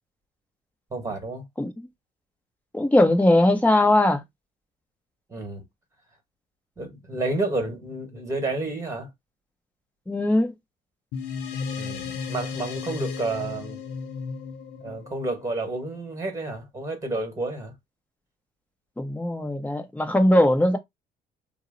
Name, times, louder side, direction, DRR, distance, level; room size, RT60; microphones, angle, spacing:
voice 1, 0.9-1.5 5.3-5.6 6.8-9.1 11.8-13.8 14.8-17.7, right 2 dB, 20° right, 1.3 m, -30 dB
voice 2, 2.7-4.2 10.1-10.5 19.0-20.8, left 1 dB, 10° left, 0.8 m, -20 dB
sound 1, 11.1-15.9, left 5 dB, 85° left, 0.7 m, -34 dB
2.7 x 2.0 x 3.7 m
cardioid pair, 110°, 17 cm